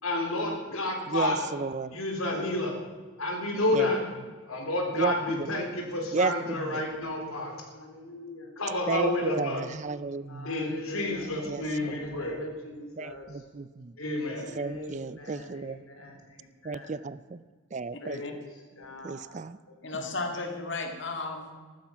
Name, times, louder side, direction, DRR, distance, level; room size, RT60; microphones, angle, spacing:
voice 1, 0.0-1.5 1.9-2.8 3.2-4.0 4.5-9.6 10.3-13.3 14.0-16.2 16.6-16.9 18.0-18.4 18.8-19.4, left 2 dB, 85° left, 2 dB, 3.9 m, -31 dB
voice 2, 1.1-2.0 3.7-3.9 4.9-5.5 6.1-6.8 8.9-10.5 11.4-11.9 13.0-13.9 14.6-15.8 16.6-17.4 17.7-18.2 19.0-19.6, right 4 dB, 35° right, 17 dB, 0.4 m, -33 dB
voice 3, 19.8-21.5, left 3 dB, 55° left, 4 dB, 2.1 m, -34 dB
14.5 x 13.0 x 5.8 m, 1.4 s
head